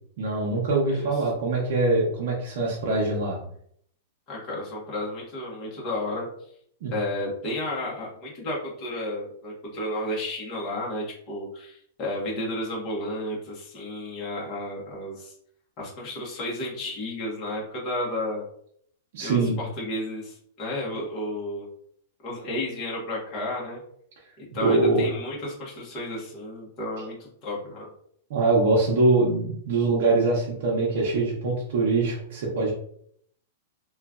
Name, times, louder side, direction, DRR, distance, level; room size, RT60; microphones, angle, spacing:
voice 1, 0.2-3.4 6.8-7.0 19.1-19.6 24.6-25.0 28.3-32.7, right 3 dB, 65° right, -3 dB, 0.7 m, -23 dB
voice 2, 0.9-1.2 4.3-6.3 6.9-15.4 15.8-18.4 19.2-21.7 22.2-23.8 24.4-27.9, left 1 dB, 35° left, -3 dB, 1.2 m, -32 dB
3.0 x 2.4 x 2.4 m, 0.67 s
hypercardioid pair, 135°, 0 cm